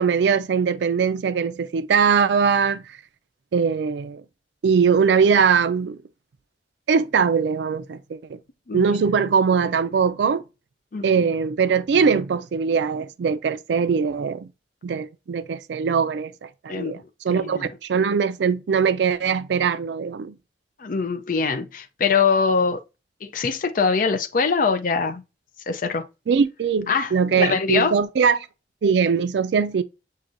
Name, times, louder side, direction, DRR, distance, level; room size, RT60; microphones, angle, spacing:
voice 1, 0.0-3.0 3.5-4.2 4.6-6.0 6.9-8.4 8.7-10.4 11.0-14.5 14.8-17.0 17.2-20.3 26.3-28.4 28.8-29.8, right 6 dB, 80° right, 0.4 m, -21 dB
voice 2, 10.9-11.3 16.7-17.0 17.3-17.7 20.8-22.8 23.2-25.2 25.7-26.1 26.9-28.0, left 5 dB, 50° left, 0.5 m, -23 dB
7.4 x 2.6 x 2.5 m
head